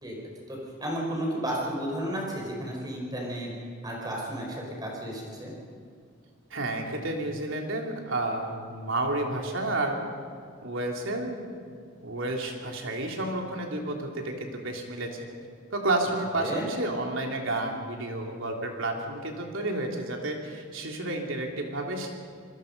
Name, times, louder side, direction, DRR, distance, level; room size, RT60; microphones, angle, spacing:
voice 1, 0.5-3.5 3.8-5.5 16.4-16.7, right 1 dB, 20° right, -1 dB, 5.0 m, -33 dB
voice 2, 6.5-10.0 10.6-11.5 12.0-15.3 15.7-22.1, right 2 dB, 80° right, 1 dB, 3.3 m, -31 dB
26.5 x 20.5 x 5.4 m, 2.2 s
head